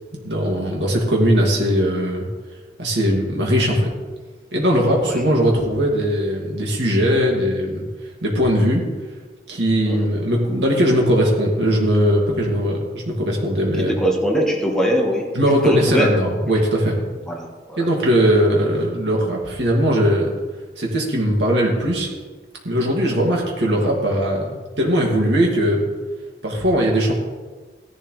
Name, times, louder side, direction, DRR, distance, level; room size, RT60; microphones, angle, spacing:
voice 1, 0.2-2.3 2.8-3.9 4.5-7.8 8.2-8.9 9.5-14.0 15.4-17.0 17.8-20.3 20.8-22.1 22.6-25.9 26.4-27.1, equal, 70° right, -1 dB, 2.4 m, -19 dB
voice 2, 13.8-15.3 15.6-16.2 17.3-17.9, equal, 5° left, -1 dB, 1.6 m, -22 dB
16.0 x 11.0 x 3.3 m, 1.3 s
head